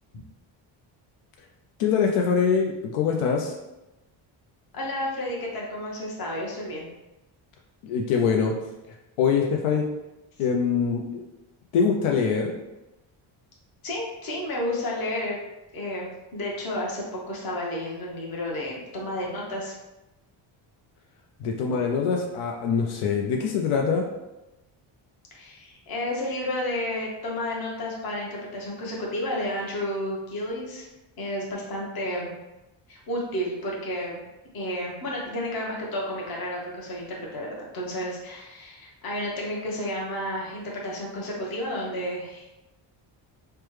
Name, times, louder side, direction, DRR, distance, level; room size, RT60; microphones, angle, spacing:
voice 1, 1.8-3.5 7.8-8.5 9.2-9.8 10.4-11.2 11.7-12.5 21.4-24.0, left 6 dB, 85° left, 1 dB, 0.5 m, -23 dB
voice 2, 4.7-6.9 13.8-15.4 15.7-19.7 25.3-30.9 31.2-32.3 32.9-34.2 34.5-42.6, left 1 dB, 45° left, -2 dB, 1.0 m, -31 dB
3.3 x 2.1 x 3.1 m, 1.0 s
cardioid pair, 115°, 48 cm